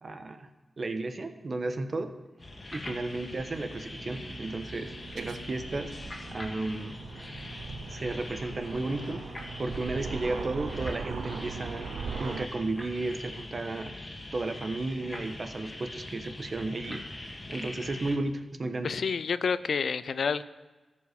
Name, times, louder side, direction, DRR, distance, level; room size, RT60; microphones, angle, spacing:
voice 1, 0.0-0.5 0.8-2.1 2.7-5.9 6.3-7.0 7.9-9.2 9.6-11.9 12.2-13.9 14.3-17.0 17.5-18.9, right 2 dB, 55° right, 7 dB, 1.1 m, -33 dB
sound 1, 2.4-18.2, left 1 dB, 35° left, 2.0 m, -42 dB
Aircraft, 3.0-12.5, right 5 dB, 90° right, 0.5 m, -40 dB
voice 2, 18.8-20.4, left 5 dB, 75° left, 15 dB, 0.4 m, -29 dB
14.0 x 5.5 x 6.6 m, 1.2 s
cardioid pair, 50°, 0 cm